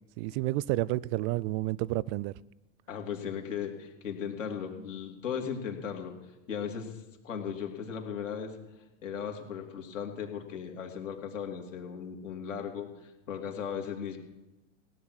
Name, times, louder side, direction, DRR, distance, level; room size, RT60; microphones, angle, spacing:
voice 1, 0.2-2.3, right 18 dB, 45° right, 0.4 m, -30 dB
voice 2, 2.9-6.1 6.5-8.6 9.0-14.2, left 7 dB, 85° left, 2.9 m, -37 dB
17.0 x 10.0 x 6.4 m
hypercardioid pair, 105°, 37 cm